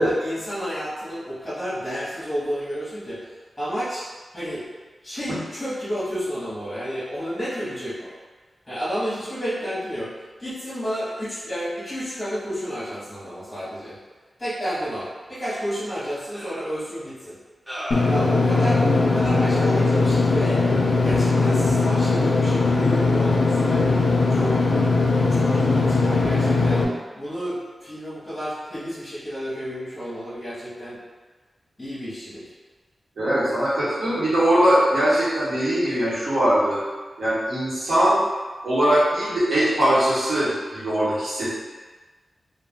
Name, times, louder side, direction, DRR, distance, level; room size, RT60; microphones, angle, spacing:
voice 1, 0.0-3.3 3.6-4.0 4.3-4.7 5.0-8.1 8.7-10.1 10.4-14.0 14.4-17.4 18.1-20.6 21.0-23.9 24.3-24.6 25.3-26.9 27.1-31.0 31.8-32.5, equal, 15° left, -11 dB, 0.9 m, -31 dB
sound 1, 15.4-15.5 16.3-16.7 17.7-18.2, equal, 10° right, 0.7 m, -35 dB
Engine / Mechanisms, 17.9-26.8, left 3 dB, 75° left, 0.3 m, -20 dB
voice 2, 33.2-36.8 37.2-38.2 38.6-41.5, right 1 dB, 80° right, -11 dB, 1.2 m, -21 dB
2.3 x 2.2 x 3.4 m, 1.3 s
wide cardioid pair, 145°, 0 cm